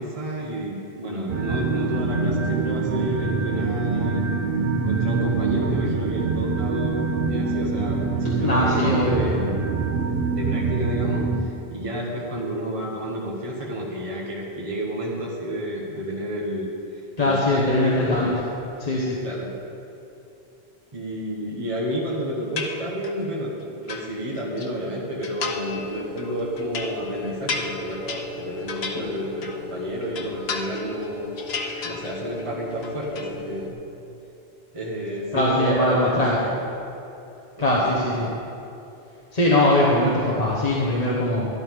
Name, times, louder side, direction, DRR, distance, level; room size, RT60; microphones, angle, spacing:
voice 1, 0.0-4.3 4.8-9.5 10.3-18.2 19.2-19.5 20.9-31.3 31.8-33.7 34.7-36.4 37.6-37.8 38.1-38.3, equal, 35° right, -4 dB, 1.3 m, -30 dB
sound 1, 1.3-11.4, right 4 dB, 65° right, 0.9 m, -25 dB
voice 2, 8.4-9.3 17.2-18.3 18.8-19.1 35.3-36.4 37.6-38.3 39.3-41.5, left 1 dB, 40° left, -5 dB, 1.3 m, -21 dB
sound 2, 22.6-23.3 23.6-24.7 25.2-25.9 26.2-29.7 30.0-31.1 31.4-32.4 32.7-33.3, left 4 dB, 85° left, 1.1 m, -33 dB
sound 3, 25.4-33.7, left 4 dB, 25° left, 1.5 m, -37 dB
12.0 x 11.5 x 3.7 m, 2.8 s
omnidirectional pair, 1.0 m